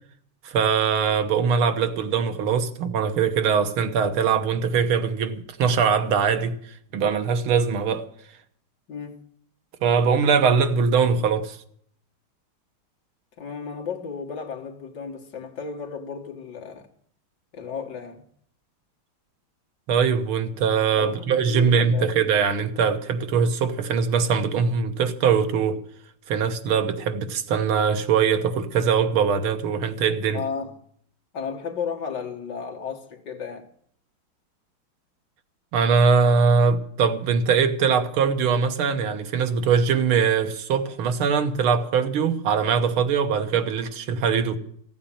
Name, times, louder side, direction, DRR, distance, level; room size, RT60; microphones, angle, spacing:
voice 1, 0.4-6.6 6.9-8.0 9.8-11.6 19.9-25.8 26.3-30.4 35.7-44.6, right 6 dB, 85° right, 2.0 m, -22 dB
voice 2, 8.9-9.2 13.4-16.9 17.5-18.3 21.0-22.1 30.3-30.7 31.3-33.7, left 6 dB, 55° left, 2.3 m, -34 dB
15.5 x 8.7 x 8.7 m
omnidirectional pair, 2.3 m